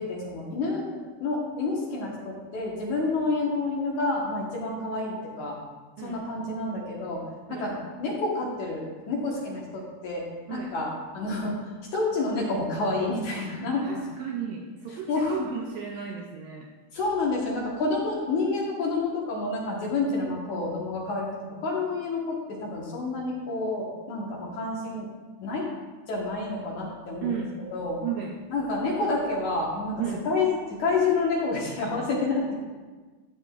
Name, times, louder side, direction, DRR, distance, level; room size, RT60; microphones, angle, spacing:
voice 1, 0.0-5.6 6.0-7.2 7.5-10.9 11.1-11.6 11.9-14.0 15.1-15.5 16.9-25.1 25.4-25.7 26.1-27.4 27.7-28.0 28.5-32.5, left 3 dB, 60° left, -3 dB, 2.4 m, -29 dB
voice 2, 13.8-16.7 27.2-27.5 28.0-28.4 30.0-30.3, right 8 dB, 80° right, 0 dB, 2.0 m, -34 dB
13.0 x 8.6 x 2.4 m, 1.4 s
omnidirectional pair, 4.5 m